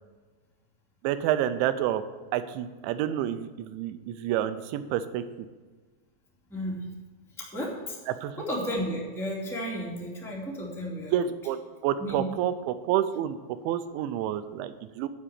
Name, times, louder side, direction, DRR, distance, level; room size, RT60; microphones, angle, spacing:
voice 1, 1.0-2.0 2.3-5.2 8.1-8.5 11.1-13.4 13.6-15.1, right 11 dB, 90° right, 11 dB, 3.0 m, -29 dB
voice 2, 6.5-6.8 7.4-8.0 8.4-11.1 12.0-12.2, equal, ahead, -5 dB, 1.1 m, -33 dB
12.0 x 5.0 x 8.7 m, 1.4 s
omnidirectional pair, 5.1 m